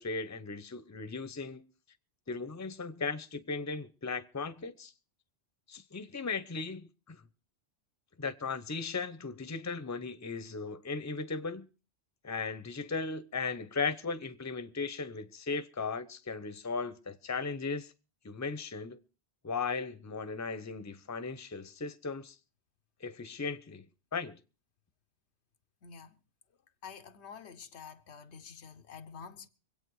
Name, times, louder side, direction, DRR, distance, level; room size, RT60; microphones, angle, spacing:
voice 1, 0.0-1.7 2.3-4.9 5.7-7.2 8.2-11.7 12.2-17.9 18.2-19.0 19.4-22.3 23.0-23.9 24.1-24.4, left 4 dB, 20° left, 0.7 m, -37 dB
voice 2, 25.8-26.2 26.8-29.5, left 6 dB, 90° left, 1.2 m, -48 dB
24.0 x 8.7 x 4.7 m
omnidirectional pair, 1.1 m